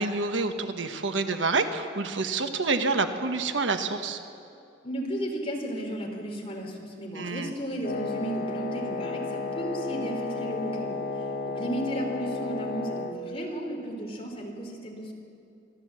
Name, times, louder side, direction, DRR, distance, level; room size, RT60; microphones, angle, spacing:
voice 1, 0.0-4.2 7.1-7.5, right 3 dB, 85° right, 7 dB, 1.3 m, -28 dB
voice 2, 4.8-15.1, right 1 dB, 30° left, 1 dB, 3.2 m, -34 dB
Wind instrument woodwind instrument, 7.8-13.2, left 4 dB, 55° left, 1.0 m, -33 dB
25.0 x 14.0 x 7.6 m, 2.6 s
head